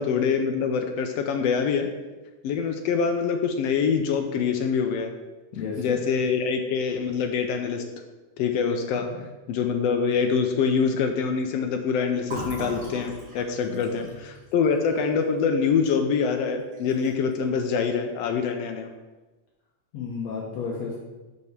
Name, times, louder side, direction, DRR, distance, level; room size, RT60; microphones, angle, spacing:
voice 1, 0.0-1.9 2.4-5.1 5.8-7.8 8.4-9.1 9.5-18.9, left 6 dB, 80° left, 5 dB, 1.4 m, -25 dB
voice 2, 5.5-6.0 8.9-9.3 13.6-14.2 19.9-21.0, left 5 dB, 65° left, -4 dB, 2.0 m, -33 dB
Fill (with liquid), 12.2-15.9 16.3-16.4 16.7-17.3, right 1 dB, 30° right, 3.0 m, -39 dB
6.1 x 5.4 x 6.6 m, 1.2 s
omnidirectional pair, 3.5 m